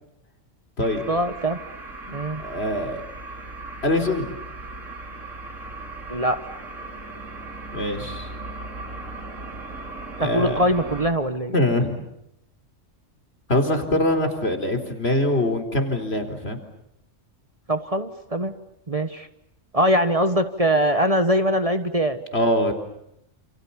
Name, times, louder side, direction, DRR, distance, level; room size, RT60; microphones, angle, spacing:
sound 1, 0.8-11.1, right 2 dB, 80° right, 4.9 m, -37 dB
voice 1, 1.1-1.6 2.1-2.4 6.1-6.4 10.2-11.5 17.7-18.5 18.9-19.3 19.7-22.2, equal, 30° right, 9 dB, 1.4 m, -22 dB
voice 2, 2.1-3.0 3.8-4.4 7.7-8.3 10.2-10.6 11.5-12.0 13.5-16.6 22.3-22.7, left 1 dB, 55° left, 6 dB, 4.3 m, -23 dB
29.5 x 28.5 x 7.1 m, 0.79 s
omnidirectional pair, 1.3 m